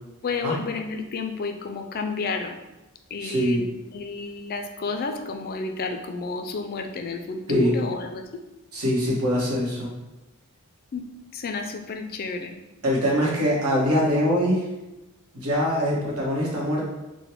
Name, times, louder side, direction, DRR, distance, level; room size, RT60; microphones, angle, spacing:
voice 1, 0.2-2.6 3.1-3.7 3.9-8.2 10.9-11.0 11.3-12.6, left 4 dB, 40° left, 6 dB, 0.3 m, -31 dB
voice 2, 3.2-3.7 7.5-7.7 8.7-9.9 12.8-14.6 15.3-16.8, equal, 80° right, -4 dB, 1.2 m, -23 dB
3.8 x 2.1 x 4.4 m, 0.99 s
head